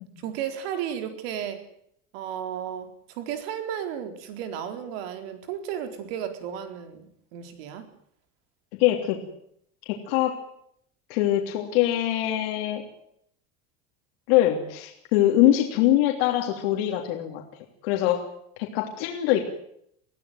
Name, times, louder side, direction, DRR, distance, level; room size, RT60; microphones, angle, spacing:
voice 1, 0.2-1.7 2.1-7.9, right 9 dB, 85° right, 7 dB, 4.2 m, -34 dB
voice 2, 8.7-9.2 9.8-10.4 11.1-12.8 14.3-17.4 17.8-18.2 18.6-19.4, left 13 dB, 90° left, 2 dB, 3.2 m, -23 dB
22.0 x 16.0 x 9.4 m, 0.71 s
cardioid pair, 170°, 29 cm